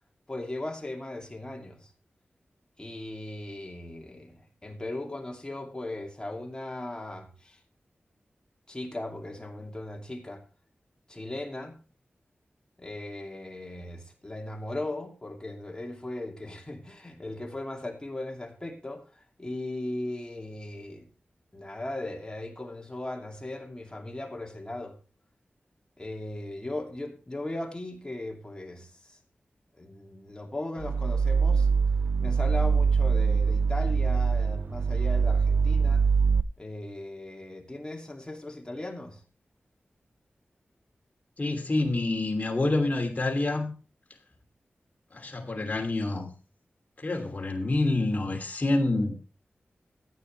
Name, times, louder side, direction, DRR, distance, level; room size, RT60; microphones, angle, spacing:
voice 1, 0.3-1.9 2.8-7.6 8.7-10.4 11.1-11.8 12.8-21.1 21.5-25.0 26.0-29.2 29.8-31.7 32.2-36.1 36.6-39.2, left 1 dB, 20° left, 2.8 m, -38 dB
sound 1, 30.8-36.4, right 5 dB, 55° right, 0.5 m, -23 dB
voice 2, 41.4-43.7 45.1-46.3 47.0-49.2, left 2 dB, 40° left, 3.0 m, -27 dB
15.0 x 9.5 x 3.4 m
wide cardioid pair, 75°, 4 cm